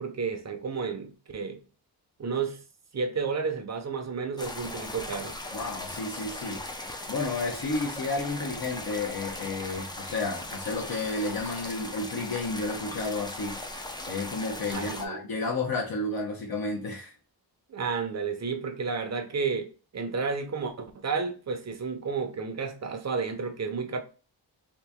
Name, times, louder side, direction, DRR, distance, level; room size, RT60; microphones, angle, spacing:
voice 1, 0.0-1.6 2.2-2.6 2.9-5.4 14.7-15.2 17.7-24.0, right 5 dB, 40° right, 0.7 m, -31 dB
sound 1, 4.4-15.1, left 1 dB, 10° left, 0.4 m, -38 dB
voice 2, 5.5-6.6 7.1-13.6 14.1-17.1, left 3 dB, 60° left, 0.8 m, -31 dB
2.9 x 2.6 x 3.4 m
wide cardioid pair, 95°, 42 cm